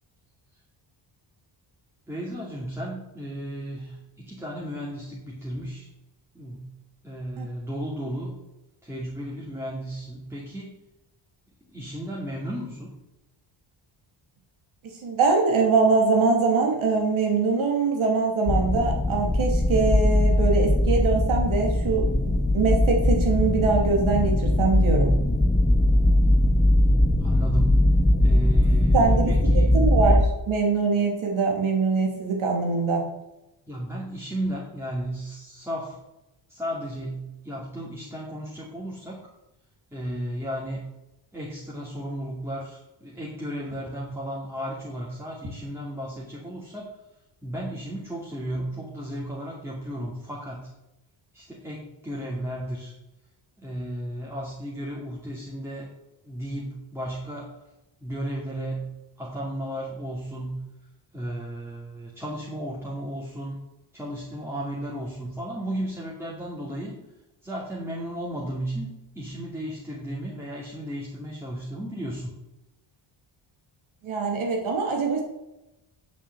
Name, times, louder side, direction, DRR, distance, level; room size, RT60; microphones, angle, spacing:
voice 1, 2.1-5.9 6.3-6.7 7.0-8.3 8.8-10.8 11.7-12.9 27.2-29.8 33.7-36.0 36.5-39.3 39.9-40.9 41.3-46.9 47.4-50.7 51.3-52.9 53.6-55.9 56.2-57.5 58.0-58.9 59.2-60.6 61.1-63.6 63.9-67.0 67.4-72.3, right 1 dB, 5° right, -5 dB, 2.4 m, -34 dB
voice 2, 14.8-25.2 28.9-30.2 30.5-33.0 74.0-75.2, right 4 dB, 85° right, 1 dB, 3.0 m, -23 dB
sound 1, 18.5-30.2, left 1 dB, 10° left, 0.5 m, -20 dB
8.5 x 6.8 x 8.1 m, 0.94 s
cardioid pair, 115°, 48 cm